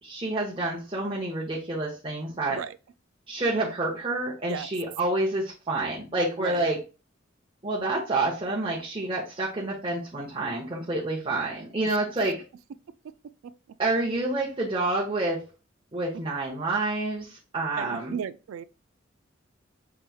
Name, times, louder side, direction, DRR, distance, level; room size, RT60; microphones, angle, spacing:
voice 1, 0.0-2.6 3.3-6.8 7.6-12.4 13.8-15.5 15.9-18.2, right 2 dB, 25° right, 0.8 m, -28 dB
voice 2, 6.4-6.7 11.8-12.0 13.0-13.1 13.4-13.5 17.8-18.6, right 7 dB, 80° right, 0.3 m, -35 dB
5.6 x 3.1 x 2.3 m
head